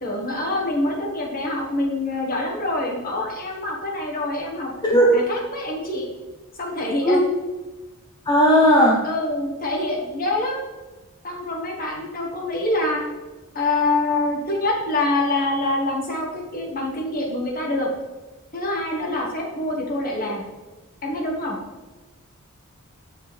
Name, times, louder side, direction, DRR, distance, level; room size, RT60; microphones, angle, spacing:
voice 1, 0.0-4.7 5.1-6.1 6.6-7.2 9.0-10.6 11.2-13.0 13.5-17.9 18.5-20.4 21.0-21.6, left 2 dB, 40° left, -1 dB, 1.5 m, -25 dB
voice 2, 4.8-5.2 7.0-7.2 8.3-9.0, equal, 20° left, -2 dB, 0.7 m, -16 dB
7.1 x 6.5 x 3.3 m, 1.2 s
head